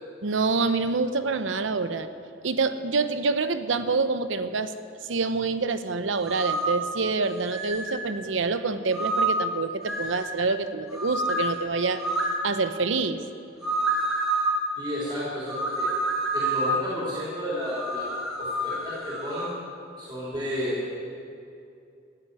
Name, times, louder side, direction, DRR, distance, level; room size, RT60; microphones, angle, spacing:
voice 1, 0.2-2.1 2.4-4.7 5.0-12.0 12.4-13.2, right 4 dB, 90° right, 11 dB, 0.8 m, -26 dB
sound 1, 6.2-6.8 7.5-8.0 8.9-9.5 9.9-10.4 10.9-11.5 12.0-12.4 13.6-14.6 15.5-16.8 17.7-19.6, right 2 dB, ahead, 2.1 m, -28 dB
voice 2, 14.8-15.9 16.3-18.1 18.4-19.5 20.0-21.0, equal, 25° right, -8 dB, 3.6 m, -32 dB
14.0 x 7.7 x 9.6 m, 2.6 s
head